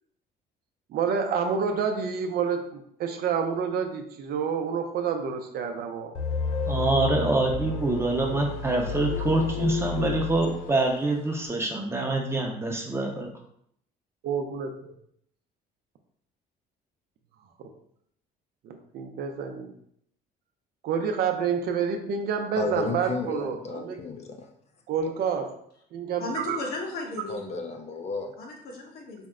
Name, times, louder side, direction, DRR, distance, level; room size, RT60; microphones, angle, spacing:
voice 1, 0.9-6.2 14.2-14.9 17.6-17.7 18.6-19.7 20.8-24.0 24.9-25.6 25.9-26.6, right 6 dB, 65° right, 5 dB, 0.6 m, -28 dB
sound 1, 6.1-11.1, left 5 dB, 90° left, 0.5 m, -32 dB
voice 2, 6.7-13.3, right 2 dB, 15° right, 1 dB, 0.7 m, -25 dB
voice 3, 22.6-24.5 27.3-28.3, left 3 dB, 40° left, 4 dB, 0.5 m, -33 dB
voice 4, 26.2-27.5 28.4-29.3, left 2 dB, 65° left, 0 dB, 1.1 m, -35 dB
4.3 x 2.1 x 3.6 m, 0.70 s
cardioid pair, 110°, 17 cm